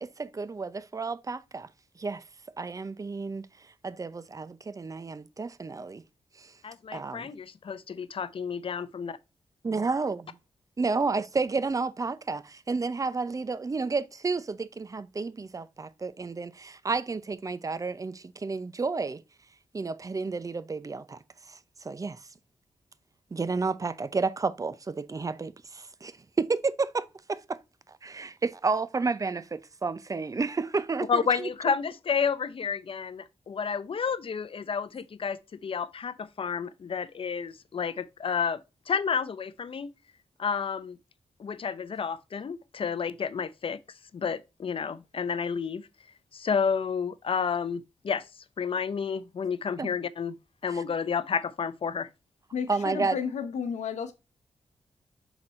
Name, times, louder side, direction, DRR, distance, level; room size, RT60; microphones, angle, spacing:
voice 1, 0.0-1.7 2.0-2.2 2.6-3.5 3.8-6.0 6.4-6.5 6.9-7.3 9.6-10.4 10.8-19.2 19.7-21.2 21.5-22.2 23.3-26.1 26.4-27.6 28.0-31.5 49.8-49.9 50.7-50.8 52.7-53.2, right 4 dB, 30° right, 0.5 m, -31 dB
voice 2, 6.6-9.2 31.1-38.6 38.9-39.9 40.4-41.0 41.4-43.8 44.1-45.9 46.3-48.2 48.6-50.3 50.6-52.1, left 6 dB, 50° left, 0.6 m, -30 dB
voice 3, 52.5-54.1, left 7 dB, 90° left, 1.0 m, -32 dB
6.0 x 4.0 x 4.3 m
cardioid pair, 70°, 12 cm